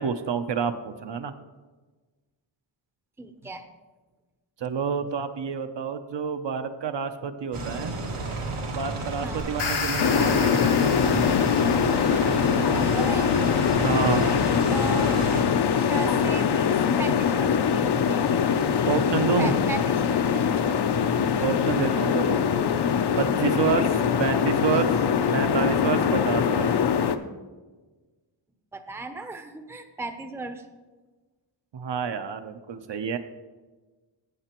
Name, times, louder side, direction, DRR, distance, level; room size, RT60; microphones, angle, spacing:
voice 1, 0.0-1.3 4.6-7.9 8.7-11.2 13.8-14.2 18.9-19.5 21.4-22.4 23.2-24.9 25.3-26.7 31.7-33.2, right 6 dB, 60° right, 8 dB, 0.7 m, -28 dB
voice 2, 3.2-3.6 9.2-9.5 12.6-13.4 14.2-14.3 14.7-15.2 15.8-18.4 19.4-20.5 21.4-21.7 23.5-23.7 28.7-30.6, right 3 dB, 5° right, 7 dB, 0.5 m, -36 dB
sound 1, 7.5-15.4, right 3 dB, 90° right, 1.6 m, -32 dB
sound 2, 9.4-12.6, left 5 dB, 85° left, 1.2 m, -33 dB
sound 3, 10.0-27.2, left 7 dB, 55° left, 0.6 m, -23 dB
16.0 x 6.7 x 3.0 m, 1.3 s
wide cardioid pair, 140°, 48 cm